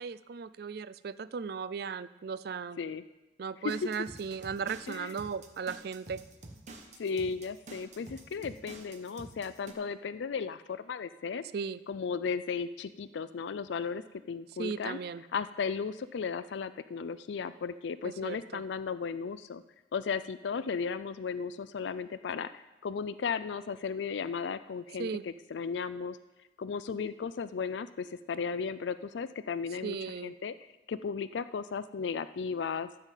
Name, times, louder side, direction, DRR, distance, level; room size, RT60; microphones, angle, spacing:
voice 1, 0.0-2.8 3.4-6.2 11.5-11.8 14.6-15.2 18.0-18.6 25.0-25.2 29.8-30.3, right 5 dB, 60° right, 16 dB, 0.4 m, -36 dB
sound 1, 3.7-9.7, right 2 dB, 40° right, 1.2 m, -49 dB
voice 2, 7.0-11.4 11.9-14.0 14.3-15.0 15.3-19.6 19.9-26.2 26.6-30.0 30.2-30.5 30.9-32.9, left 5 dB, 85° left, 14 dB, 0.4 m, -35 dB
13.0 x 5.6 x 7.4 m, 1.0 s
head